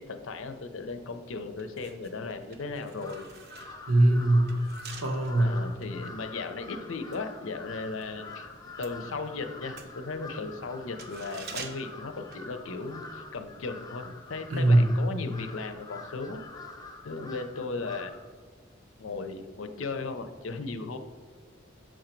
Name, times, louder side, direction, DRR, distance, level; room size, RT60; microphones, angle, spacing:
voice 1, 0.0-3.3 5.4-8.5 8.8-16.4 17.0-18.1 19.0-21.0, left 3 dB, 80° left, 8 dB, 0.6 m, -36 dB
sound 1, 1.6-8.1 8.4-13.1 13.3-13.5, right 5 dB, 50° right, 0.6 m, -48 dB
Crow, 2.9-18.3, left 3 dB, 20° left, 0.4 m, -46 dB
voice 2, 3.9-4.5 5.0-5.6 14.5-14.9, right 1 dB, 85° right, 4 dB, 0.9 m, -21 dB
6.4 x 3.9 x 4.5 m, 1.5 s
head